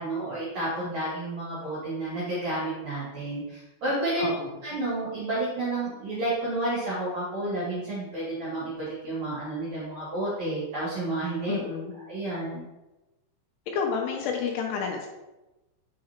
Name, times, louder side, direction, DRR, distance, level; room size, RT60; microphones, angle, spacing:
voice 1, 0.0-4.2 4.6-11.6 12.1-12.7, right 2 dB, 55° right, -8 dB, 2.0 m, -31 dB
voice 2, 4.2-4.5 11.5-11.9 13.7-15.1, left 6 dB, 80° left, 1 dB, 2.9 m, -29 dB
6.6 x 6.5 x 2.9 m, 1.0 s
omnidirectional pair, 5.8 m